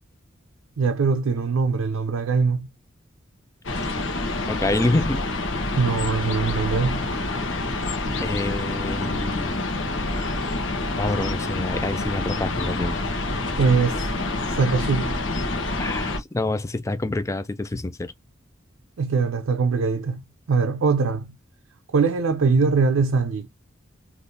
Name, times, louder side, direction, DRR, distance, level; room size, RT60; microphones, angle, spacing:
voice 1, 0.8-2.7 5.8-7.1 13.6-14.0 14.5-15.2 19.0-20.2 20.5-21.3 21.9-23.5, right 4 dB, 85° right, 0.4 m, -22 dB
sound 1, 3.6-16.2, left 2 dB, 65° left, 0.9 m, -27 dB
voice 2, 4.5-5.2 8.2-9.5 11.0-13.0 15.8-18.1, left 2 dB, 15° left, 0.4 m, -27 dB
3.6 x 2.5 x 2.6 m
head